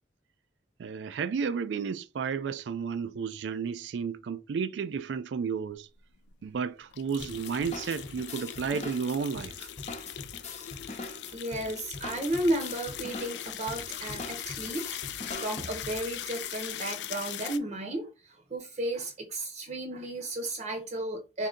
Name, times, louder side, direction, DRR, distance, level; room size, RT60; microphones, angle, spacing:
voice 1, 0.8-5.9 6.4-9.7, right 6 dB, 90° right, 0.4 m, -32 dB
sound 1, 6.0-6.1 6.3-6.4 6.9-17.6, left 11 dB, 70° left, 0.4 m, -40 dB
sound 2, 7.2-16.1, left 2 dB, 40° left, 0.8 m, -42 dB
voice 2, 11.3-21.5, right 1 dB, 40° right, 0.7 m, -34 dB
3.6 x 2.7 x 3.7 m
head